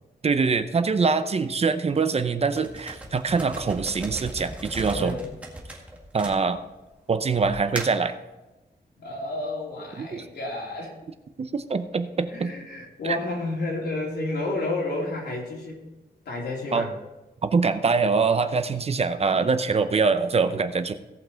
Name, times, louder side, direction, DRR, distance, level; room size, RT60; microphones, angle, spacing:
voice 1, 0.2-5.1 6.1-6.6 7.1-8.1 10.0-10.3 11.4-12.5 13.0-13.2 16.7-16.9 17.4-20.9, right 4 dB, 35° right, 10 dB, 0.6 m, -24 dB
sound 1, 2.6-6.9 7.4-8.1, right 1 dB, 10° right, 1.8 m, -37 dB
voice 2, 4.9-5.3 9.0-10.9 12.3-15.8 16.2-16.9, left 2 dB, 85° left, -2 dB, 3.2 m, -31 dB
17.0 x 5.8 x 4.5 m, 1.1 s
wide cardioid pair, 160°, 17 cm